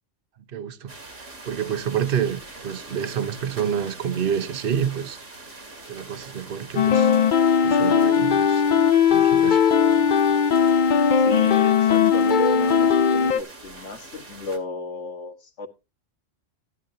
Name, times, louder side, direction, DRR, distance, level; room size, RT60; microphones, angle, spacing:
voice 1, 0.5-5.2 5.9-7.1 7.6-8.6 9.1-9.7, right 8 dB, 50° right, 1.1 m, -28 dB
sound 1, 0.9-14.6, right 2 dB, 75° right, 2.6 m, -43 dB
sound 2, 6.8-13.4, left 7 dB, 50° left, 0.7 m, -18 dB
voice 2, 11.2-15.7, left 3 dB, 65° left, 1.9 m, -32 dB
15.0 x 11.0 x 2.8 m
omnidirectional pair, 1.3 m